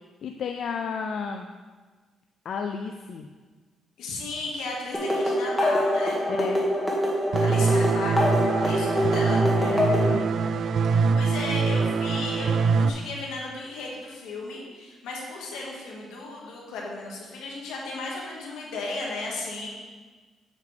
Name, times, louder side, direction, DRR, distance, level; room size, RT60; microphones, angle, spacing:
voice 1, 0.2-1.5 2.4-3.3 6.3-6.6 9.6-10.3, left 6 dB, 65° left, 5 dB, 0.4 m, -32 dB
voice 2, 4.0-6.2 7.4-9.4 10.9-19.7, left 2 dB, 90° left, -2 dB, 2.0 m, -35 dB
sound 1, 4.9-10.1, left 1 dB, 10° left, 2.1 m, -25 dB
sound 2, 7.3-12.9, right 5 dB, 60° right, 0.3 m, -24 dB
8.1 x 7.9 x 3.5 m, 1.4 s
cardioid pair, 90°, 0 cm